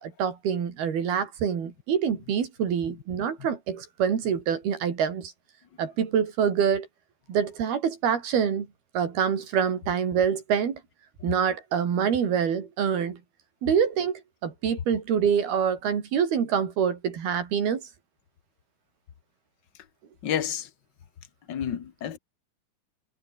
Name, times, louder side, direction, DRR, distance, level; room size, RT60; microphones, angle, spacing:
voice 1, 0.0-5.3 5.8-6.9 7.3-8.7 9.0-10.8 11.2-13.2 13.6-17.8, right 7 dB, 90° right, 5.3 m, -26 dB
voice 2, 20.2-20.7 21.5-22.2, left 9 dB, 70° left, 1.0 m, -29 dB
omnidirectional pair, 4.3 m